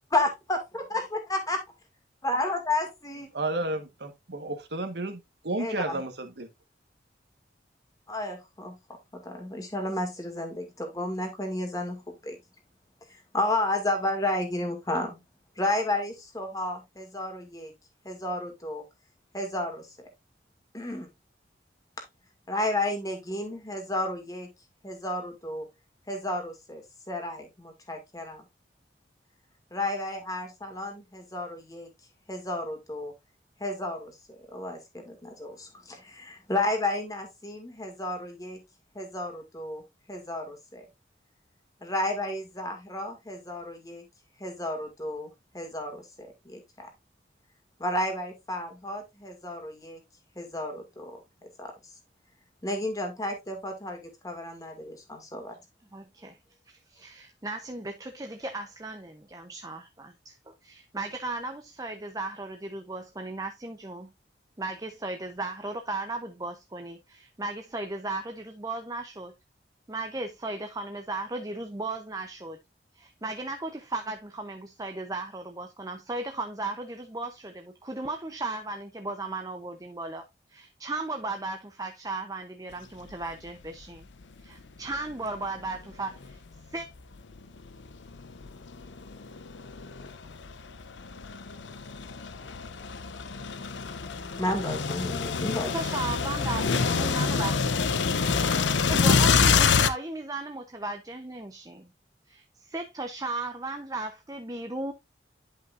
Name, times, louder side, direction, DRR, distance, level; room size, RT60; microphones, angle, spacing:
voice 1, 0.1-1.6 2.2-3.3 5.6-6.0 8.1-8.7 9.1-12.4 13.3-15.2 15.6-17.7 18.0-18.8 19.3-20.1 20.7-21.1 22.5-24.5 24.8-25.6 26.1-26.8 27.1-28.4 29.7-31.9 32.3-33.1 33.6-38.6 38.9-39.8 40.1-40.9 41.8-44.0 44.4-46.9 47.8-50.0 50.4-51.2 51.6-51.7 52.6-55.6 94.4-95.7, left 1 dB, 20° left, 2.1 m, -32 dB
voice 2, 3.3-6.5, right 2 dB, 65° right, 1.3 m, -32 dB
voice 3, 55.9-56.4 56.7-64.1 64.6-69.3 69.9-72.6 72.9-80.2 80.5-84.1 84.4-86.4 86.7-86.9 95.6-97.5 98.9-101.9 102.3-104.9, right 2 dB, 20° right, 0.7 m, -36 dB
sound 1, 83.1-83.3 83.8-83.9 84.9-86.6 87.2-99.9, left 5 dB, 85° left, 0.7 m, -27 dB
10.5 x 5.5 x 2.5 m
head